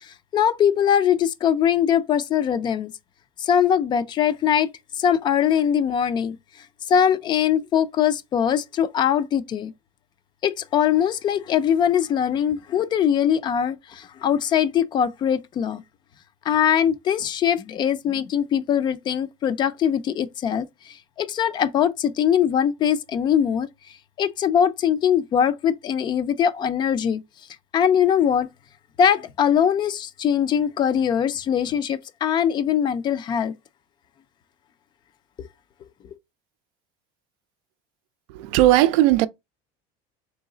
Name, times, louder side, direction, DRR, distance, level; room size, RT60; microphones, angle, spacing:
voice 1, 0.0-2.9 3.4-4.7 4.9-6.4 6.9-9.7 10.4-15.8 16.5-23.7 24.2-27.2 27.7-28.5 29.0-33.5 35.4-35.5, left 8 dB, 30° left, 0.4 m, -21 dB
voice 2, 38.3-39.3, right 15 dB, 80° right, 0.4 m, -17 dB
3.9 x 3.1 x 3.7 m
cardioid pair, 160°, 16 cm